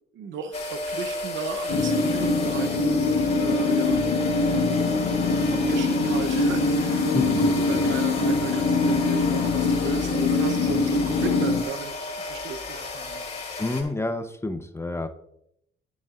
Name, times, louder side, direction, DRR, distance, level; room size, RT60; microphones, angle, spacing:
voice 1, 0.1-13.2, right 6 dB, 70° right, 7 dB, 0.8 m, -36 dB
sound 1, 0.5-13.8, left 3 dB, 35° left, 2.8 m, -33 dB
sound 2, 1.7-11.6, left 3 dB, 80° left, 1.0 m, -23 dB
voice 2, 7.1-7.8 13.6-15.1, left 2 dB, 15° left, 8 dB, 0.7 m, -29 dB
10.0 x 9.5 x 2.4 m, 0.78 s
cardioid pair, 90°, 20 cm